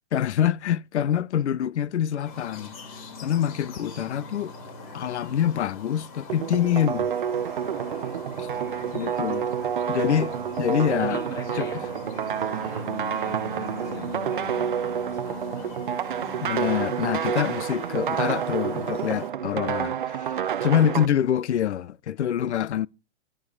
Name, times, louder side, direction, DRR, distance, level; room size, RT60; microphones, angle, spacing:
voice 1, 0.1-2.7 3.2-4.5 4.9-7.1 8.4-8.5 8.9-9.5 9.9-11.2 11.6-11.7 16.4-22.9, left 10 dB, 70° left, 0.6 m, -25 dB
sound 1, 2.2-19.3, left 4 dB, 30° left, 2.5 m, -42 dB
sound 2, 6.3-21.1, right 8 dB, 45° right, 0.5 m, -29 dB
voice 2, 11.0-11.9 12.5-15.8, left 1 dB, 10° left, 1.7 m, -43 dB
13.5 x 8.8 x 4.9 m
hypercardioid pair, 180°, 36 cm